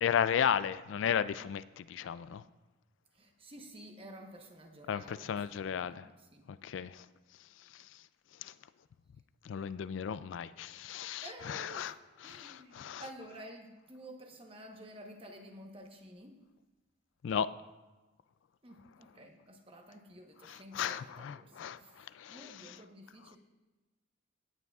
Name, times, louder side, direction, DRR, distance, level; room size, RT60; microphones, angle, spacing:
voice 1, 0.0-2.4 4.9-6.1 6.6-7.0 8.4-8.5 9.5-11.9 12.3-13.0 17.2-17.5 20.7-22.5, left 8 dB, 65° left, 0.3 m, -34 dB
voice 2, 3.1-6.5 11.2-16.5 18.6-23.4, right 1 dB, 30° right, 1.0 m, -52 dB
17.0 x 9.6 x 2.4 m
head